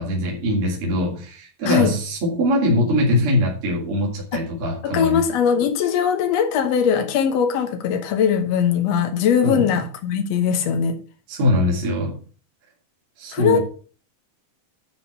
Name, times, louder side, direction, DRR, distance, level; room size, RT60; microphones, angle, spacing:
voice 1, 0.0-5.2 9.4-9.7 11.3-12.2 13.2-13.6, left 1 dB, 40° right, 3.4 m, -22 dB
voice 2, 4.8-11.0 13.3-13.6, left 7 dB, 70° left, 1.6 m, -20 dB
10.5 x 5.3 x 6.6 m
omnidirectional pair, 4.3 m